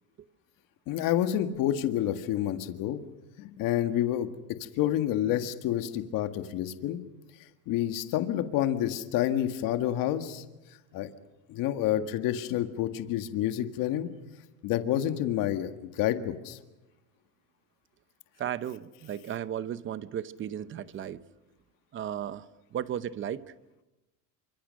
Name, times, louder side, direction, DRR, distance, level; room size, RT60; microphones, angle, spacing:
voice 1, 0.9-3.0 3.4-4.3 4.8-7.0 7.7-10.4 10.9-11.1 11.5-14.1 14.6-16.6, left 12 dB, 50° left, 8 dB, 1.9 m, -28 dB
voice 2, 18.4-21.2 21.9-23.5, right 10 dB, 30° right, 15 dB, 0.9 m, -35 dB
28.0 x 25.5 x 6.5 m, 1.0 s
cardioid pair, 150°, 43 cm